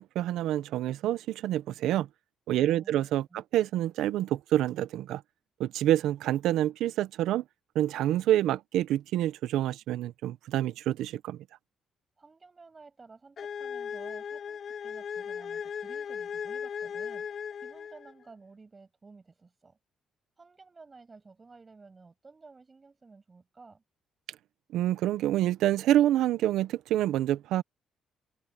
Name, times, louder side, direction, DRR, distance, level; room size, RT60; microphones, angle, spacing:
voice 1, 0.0-2.1 2.5-5.2 5.6-7.4 7.7-11.4 24.7-27.6, right 13 dB, 85° right, 0.6 m, -27 dB
voice 2, 2.6-3.4 12.2-17.3 17.6-19.8 20.4-23.8, right 4 dB, 30° right, 7.2 m, -53 dB
sound 1, 13.4-18.2, left 7 dB, 55° left, 2.5 m, -37 dB
cardioid pair, 90°, 0 cm